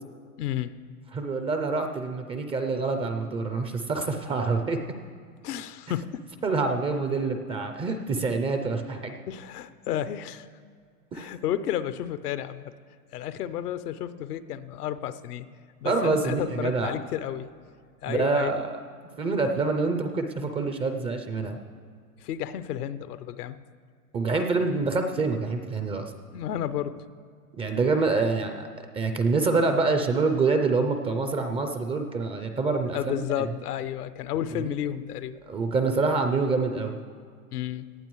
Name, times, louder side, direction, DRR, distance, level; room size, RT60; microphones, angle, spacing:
voice 1, 0.4-0.7 5.4-6.2 9.3-10.5 11.1-12.7 13.1-15.5 15.8-17.5 18.0-18.5 22.2-23.6 26.3-27.0 32.9-35.3 37.5-37.8, left 11 dB, 80° left, 13 dB, 0.7 m, -32 dB
voice 2, 1.1-4.8 6.4-9.1 11.1-11.3 15.8-16.9 18.1-18.7 19.2-21.6 24.1-26.1 27.6-28.7 28.9-33.3 35.5-37.0, right 3 dB, 15° right, 6 dB, 0.3 m, -26 dB
18.0 x 11.5 x 3.1 m, 2.1 s
hypercardioid pair, 110°, 46 cm